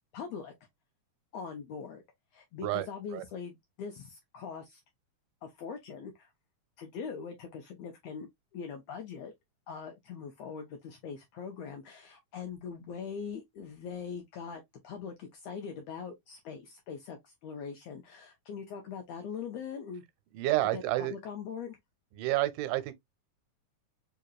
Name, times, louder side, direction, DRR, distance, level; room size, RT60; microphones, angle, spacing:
voice 1, 0.1-0.5 1.3-2.0 2.3-4.8 5.4-6.3 6.8-9.3 9.7-20.0 20.7-21.8, left 6 dB, 80° left, 1.5 m, -42 dB
voice 2, 20.3-21.2 22.1-22.9, right 16 dB, 90° right, 2.2 m, -29 dB
4.9 x 2.8 x 2.2 m
omnidirectional pair, 3.7 m